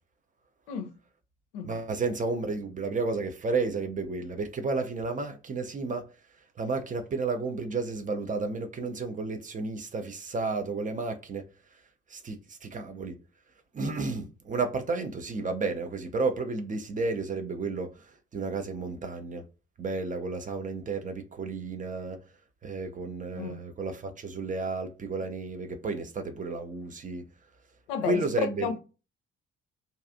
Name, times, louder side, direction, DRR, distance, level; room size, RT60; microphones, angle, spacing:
voice 1, 1.6-6.0 6.6-11.4 12.1-13.2 13.7-17.9 18.3-19.4 19.8-22.2 22.6-27.2 28.1-28.7, right 3 dB, 25° right, 0.5 m, -32 dB
voice 2, 27.9-28.8, left 6 dB, 70° left, 0.5 m, -32 dB
2.5 x 2.3 x 2.5 m
figure-of-eight pair, 45°, 33 cm